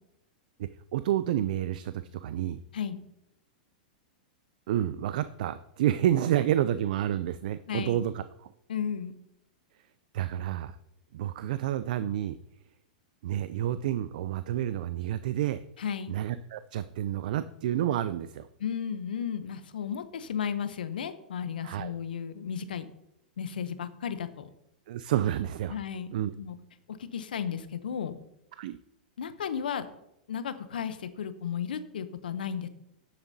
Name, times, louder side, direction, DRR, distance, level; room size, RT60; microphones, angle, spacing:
voice 1, 0.9-2.6 4.7-8.5 10.1-10.8 11.1-12.4 13.2-15.6 16.1-18.5 21.6-21.9 24.9-25.7 26.1-26.3 28.6-28.8, right 11 dB, 65° right, 13 dB, 0.4 m, -29 dB
voice 2, 7.7-8.0 8.7-9.1 15.8-16.1 18.6-22.9 23.4-24.5 25.7-26.6 26.9-28.2 29.2-29.9 30.3-32.7, left 7 dB, 80° left, 12 dB, 0.7 m, -34 dB
9.2 x 7.3 x 2.7 m, 0.81 s
hypercardioid pair, 115°, 5 cm